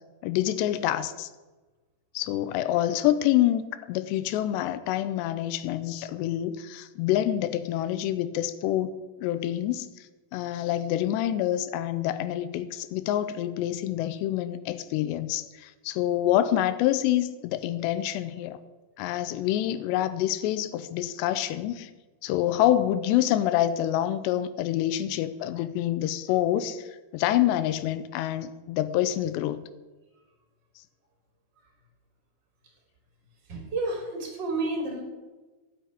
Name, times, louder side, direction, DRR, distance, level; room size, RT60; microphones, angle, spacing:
voice 1, 0.2-1.3 2.1-8.9 9.2-18.6 19.0-21.9 22.2-29.6, left 12 dB, 85° left, 12 dB, 2.8 m, -27 dB
voice 2, 33.5-35.0, right 2 dB, 25° right, 2 dB, 3.6 m, -30 dB
12.5 x 7.5 x 9.6 m, 1.2 s
omnidirectional pair, 5.0 m